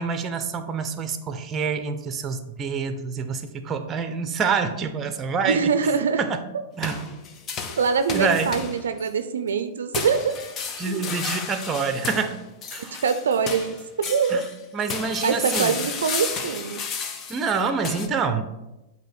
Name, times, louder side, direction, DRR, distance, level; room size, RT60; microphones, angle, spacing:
voice 1, 0.0-6.4 6.8-7.2 8.1-8.5 10.8-12.4 12.7-13.0 14.3-14.4 14.7-15.8 17.3-18.5, right 5 dB, 25° right, 9 dB, 0.7 m, -27 dB
voice 2, 5.4-6.2 7.8-10.3 10.9-11.0 13.0-14.4 15.2-16.8, right 6 dB, 75° right, 10 dB, 0.5 m, -24 dB
sound 1, 6.8-9.1 9.9-14.6 14.9-18.1, left 5 dB, 30° left, 0.7 m, -33 dB
7.8 x 2.8 x 6.1 m, 0.97 s
hypercardioid pair, 110°, 0 cm